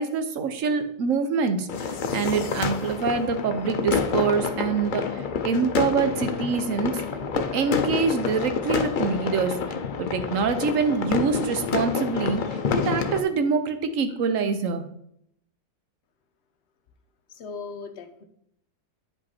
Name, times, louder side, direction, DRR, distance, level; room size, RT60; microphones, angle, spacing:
voice 1, 0.0-7.0 7.5-9.5 10.0-12.4 12.8-14.8, right 5 dB, 60° right, 9 dB, 1.1 m, -25 dB
sound 1, 1.7-13.2, left 5 dB, 65° left, 0.5 m, -28 dB
voice 2, 17.3-18.2, left 4 dB, 50° left, 6 dB, 0.9 m, -38 dB
8.8 x 5.2 x 4.2 m, 0.73 s
omnidirectional pair, 1.7 m